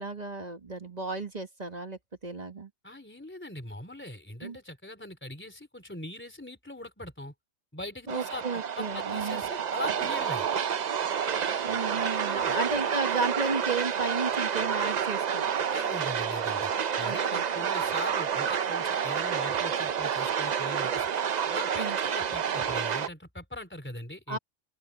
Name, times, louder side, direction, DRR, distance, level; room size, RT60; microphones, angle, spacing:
voice 1, 0.0-2.7 4.4-4.6 8.1-9.4 11.6-15.5 17.0-17.4 21.8-22.0 24.3-24.4, right 3 dB, 35° right, 1.7 m, -33 dB
voice 2, 2.8-7.3 7.7-10.5 12.2-12.6 15.7-16.7 17.0-21.2 21.5-24.4, left 1 dB, 10° left, 3.8 m, -41 dB
sound 1, 8.1-23.1, right 7 dB, 50° right, 0.6 m, -29 dB
open air
omnidirectional pair, 1.3 m